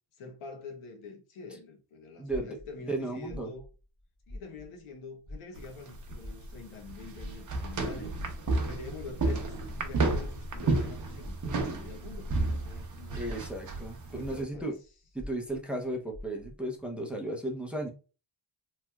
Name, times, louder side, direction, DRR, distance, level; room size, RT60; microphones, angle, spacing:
voice 1, 0.2-3.7 4.3-8.1 8.7-13.3 14.1-14.8, left 4 dB, 80° left, 1.0 m, -46 dB
voice 2, 2.2-2.6 2.9-3.5 7.9-8.1 9.3-9.4 13.1-14.7 15.1-17.9, right 1 dB, ahead, 0.6 m, -35 dB
sound 1, 2.3-4.9 5.2-12.8 13.2-16.7, left 1 dB, 20° left, 1.1 m, -46 dB
sound 2, 5.5-14.4, right 3 dB, 40° right, 0.7 m, -32 dB
3.2 x 2.9 x 2.3 m
cardioid pair, 100°, 49 cm